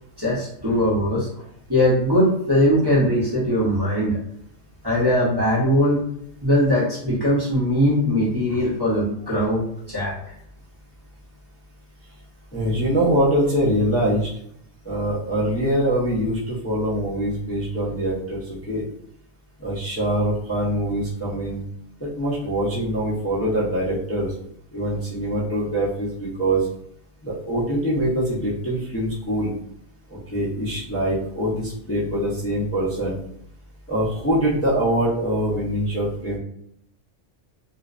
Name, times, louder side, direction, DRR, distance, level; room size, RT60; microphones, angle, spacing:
voice 1, 0.2-1.3 1.7-4.2 4.8-6.0 6.4-9.6 9.9-10.2, equal, 25° right, -8 dB, 0.6 m, -20 dB
voice 2, 12.5-14.3 14.8-18.8 19.6-21.6 22.0-24.3 24.7-26.7 27.2-29.5 30.3-33.2 33.9-36.4, right 1 dB, 20° left, -10 dB, 0.3 m, -23 dB
2.4 x 2.1 x 2.4 m, 0.71 s
omnidirectional pair, 1.3 m